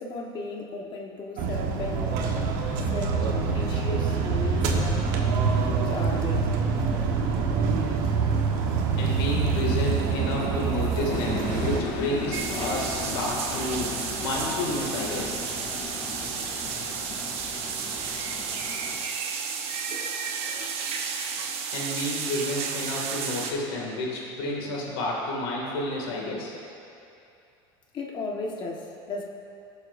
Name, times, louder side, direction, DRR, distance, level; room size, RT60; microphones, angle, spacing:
voice 1, 0.0-2.2 2.9-5.1 5.4-6.5 27.9-29.2, left 2 dB, 40° left, 0 dB, 1.4 m, -35 dB
sound 1, 1.4-11.8, right 5 dB, 70° right, 1.3 m, -25 dB
voice 2, 9.0-15.3 21.7-26.5, left 1 dB, 85° left, -3 dB, 2.3 m, -30 dB
sound 2, 11.1-19.0, left 2 dB, 70° left, 2.0 m, -35 dB
sound 3, 12.3-23.5, right 6 dB, 55° right, 1.0 m, -32 dB
20.5 x 7.2 x 2.7 m, 2.6 s
supercardioid pair, 115°, 12 cm